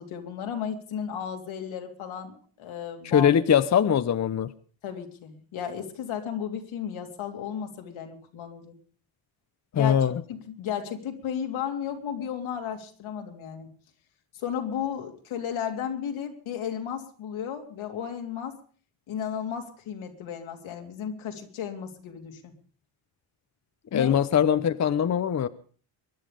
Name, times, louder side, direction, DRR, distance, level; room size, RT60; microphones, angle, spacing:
voice 1, 0.0-3.3 4.8-8.7 9.7-13.7 14.3-18.6 19.1-22.5 23.9-24.1, left 8 dB, 80° left, 3 dB, 3.4 m, -34 dB
voice 2, 3.1-4.5 9.7-10.2 23.9-25.5, left 8 dB, 35° left, 13 dB, 0.7 m, -22 dB
23.5 x 10.5 x 5.2 m, 0.43 s
cardioid pair, 125°, 47 cm